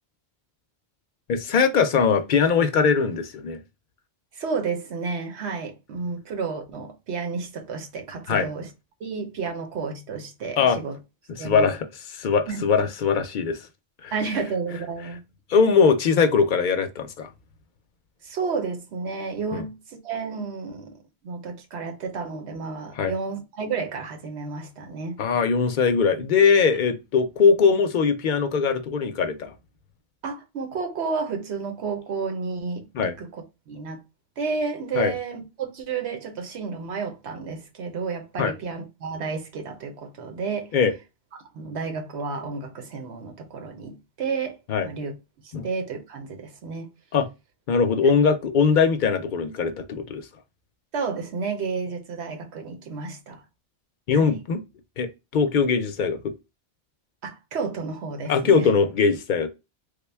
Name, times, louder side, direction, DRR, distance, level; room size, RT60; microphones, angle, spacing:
voice 1, 1.3-3.6 8.3-8.5 10.6-10.8 11.4-11.9 12.1-13.6 14.0-14.1 15.5-17.3 19.5-19.6 23.0-23.1 25.2-29.5 32.9-33.1 35.0-35.1 38.4-38.5 40.7-40.9 44.7-44.9 45.5-45.6 47.1-47.3 47.7-50.2 54.1-54.6 55.0-56.2 58.3-59.5, left 5 dB, 60° left, 0.6 m, -21 dB
voice 2, 4.3-8.7 9.0-11.0 11.4-11.7 12.5-12.7 14.1-15.2 18.2-20.9 21.2-25.2 30.2-34.0 34.4-40.8 41.5-44.6 44.8-45.1 45.4-46.9 50.9-53.4 54.1-54.4 57.2-58.7, right 5 dB, 90° right, 1.1 m, -31 dB
3.5 x 2.2 x 3.3 m
omnidirectional pair, 1.1 m